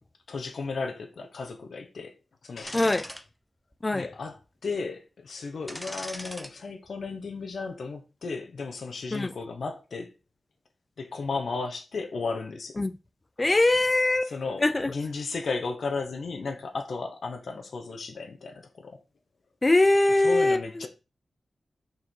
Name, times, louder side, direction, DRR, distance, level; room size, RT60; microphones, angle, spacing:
voice 1, 0.3-2.2 2.4-3.0 3.9-10.1 11.0-12.8 14.3-19.0 20.2-20.9, left 4 dB, 70° left, 1.1 m, -34 dB
sound 1, 2.6-3.2 3.7-3.8 5.7-6.5 6.9-7.1, equal, 5° left, 0.9 m, -39 dB
voice 2, 2.7-3.0 3.8-4.1 9.1-9.3 12.8-13.0 13.4-14.3 14.6-14.9 19.6-20.9, left 2 dB, 25° left, 0.6 m, -22 dB
5.6 x 4.6 x 4.8 m
wide cardioid pair, 90°, 0 cm